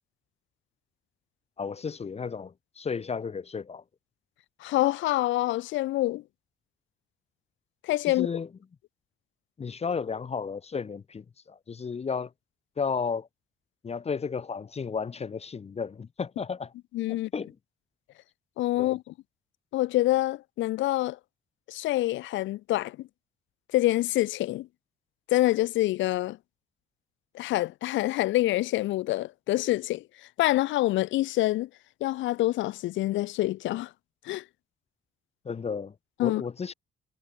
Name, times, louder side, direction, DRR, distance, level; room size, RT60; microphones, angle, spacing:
voice 1, 1.6-3.8 8.1-8.5 9.6-12.3 12.8-13.3 13.8-16.7 17.1-17.5 18.7-19.0 35.4-36.7, left 5 dB, 30° left, 0.8 m, -33 dB
voice 2, 4.6-6.2 7.8-8.3 16.9-17.3 18.6-19.0 19.7-21.2 21.7-23.1 23.7-24.7 25.3-26.4 27.3-30.0 30.4-31.7 32.0-33.9 34.2-34.4 36.2-36.4, left 16 dB, 70° left, 0.4 m, -26 dB
cardioid pair, 90°, 20 cm